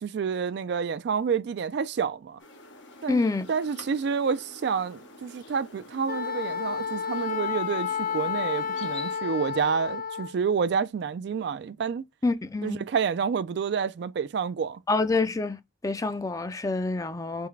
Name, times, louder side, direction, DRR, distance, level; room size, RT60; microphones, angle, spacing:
voice 1, 0.0-2.4 3.0-3.2 3.5-12.0 12.6-14.8, right 6 dB, 65° right, 0.3 m, -29 dB
sound 1, 2.4-9.2, left 2 dB, 90° left, 1.0 m, -47 dB
voice 2, 3.1-3.5 12.2-12.8 14.9-15.6 15.8-17.5, left 3 dB, 20° left, 0.4 m, -27 dB
Wind instrument woodwind instrument, 6.1-10.3, left 7 dB, 55° left, 0.8 m, -31 dB
3.9 x 3.5 x 3.2 m
head